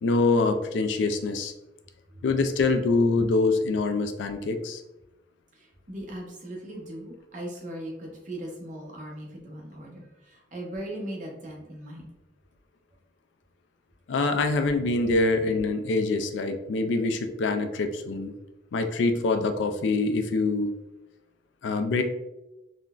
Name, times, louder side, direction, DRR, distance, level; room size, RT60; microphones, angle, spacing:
voice 1, 0.0-1.5 2.2-4.8 14.1-18.3 18.7-20.8 21.6-22.0, left 3 dB, 75° left, 7 dB, 0.3 m, -25 dB
voice 2, 5.5-12.1, right 1 dB, 40° right, -1 dB, 0.7 m, -39 dB
3.7 x 2.1 x 2.3 m, 0.95 s
head